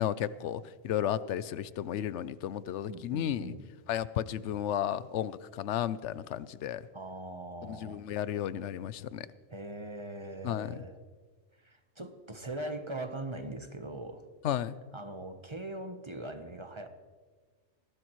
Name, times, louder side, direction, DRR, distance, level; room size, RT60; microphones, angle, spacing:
voice 1, 0.0-3.5 3.9-6.8 7.6-9.3 10.4-10.7 14.4-14.8, left 10 dB, 85° left, 16 dB, 0.9 m, -33 dB
voice 2, 2.9-3.7 6.9-8.0 9.5-11.0 11.6-14.2 14.9-16.9, right 2 dB, 25° right, 7 dB, 1.0 m, -41 dB
20.5 x 16.5 x 3.1 m, 1.4 s
omnidirectional pair, 1.2 m